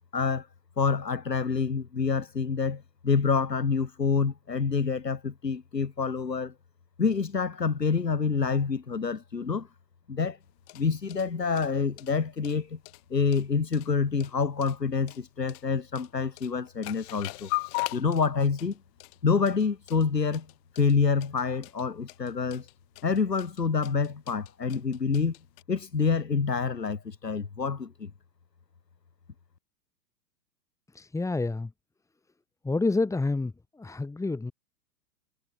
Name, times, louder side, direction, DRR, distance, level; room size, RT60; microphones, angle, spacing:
voice 1, 0.1-0.5 0.8-6.5 7.0-9.7 10.1-10.4 10.7-12.8 13.1-17.5 17.9-18.8 19.2-20.5 20.8-22.7 23.0-25.3 25.7-28.1, left 5 dB, 80° left, 5.1 m, -27 dB
sound 1, 10.4-25.6, left 30 dB, 40° left, 4.8 m, -41 dB
voice 2, 30.9-31.7 32.6-34.5, left 3 dB, 5° left, 4.6 m, -28 dB
figure-of-eight pair, 115°, 49 cm